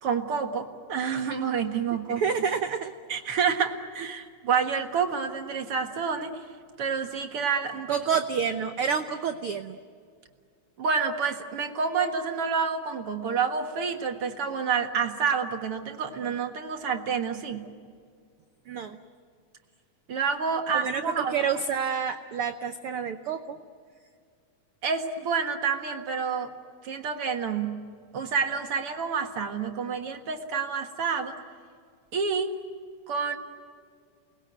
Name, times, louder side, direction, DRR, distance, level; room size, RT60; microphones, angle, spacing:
voice 1, 0.0-2.2 3.1-6.3 6.8-8.0 10.8-17.7 20.1-21.4 24.8-26.5 26.8-27.8 28.1-31.4 32.1-32.5 33.1-33.4, right 6 dB, 50° right, 5 dB, 2.1 m, -28 dB
voice 2, 2.2-2.9 7.9-9.8 18.7-19.0 20.7-23.6, right 6 dB, 85° right, 8 dB, 1.2 m, -28 dB
29.0 x 20.0 x 9.1 m, 2.1 s
omnidirectional pair, 3.8 m